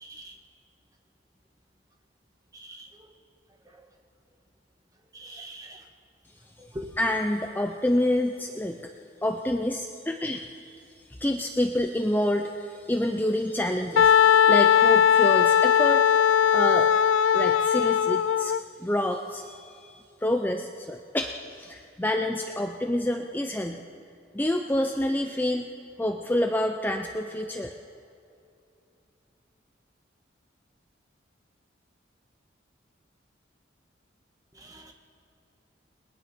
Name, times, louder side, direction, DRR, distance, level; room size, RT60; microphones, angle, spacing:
voice 1, 0.0-0.3 2.5-2.9 5.1-5.8 6.6-6.9 34.6-34.9, equal, 20° right, 3 dB, 1.7 m, -42 dB
voice 2, 7.0-8.8 9.2-10.8 11.1-23.8 24.3-25.7 26.0-27.7, left 1 dB, 10° left, 4 dB, 0.6 m, -28 dB
Wind instrument woodwind instrument, 14.0-18.6, left 8 dB, 85° left, 0.4 m, -19 dB
30.0 x 20.5 x 4.5 m, 2.6 s
head